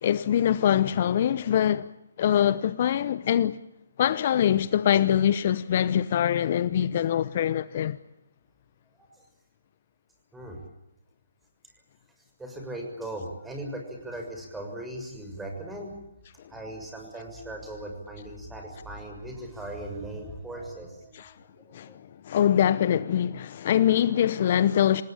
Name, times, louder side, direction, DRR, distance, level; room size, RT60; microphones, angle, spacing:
voice 1, 0.0-1.9 2.2-3.6 4.0-8.0 21.1-21.3 21.7-25.0, left 10 dB, 45° left, 0.8 m, -23 dB
voice 2, 10.3-10.6 12.4-16.0 16.5-22.0, right 1 dB, 5° right, 6.7 m, -39 dB
27.5 x 19.0 x 8.9 m
figure-of-eight pair, 145°, 0 cm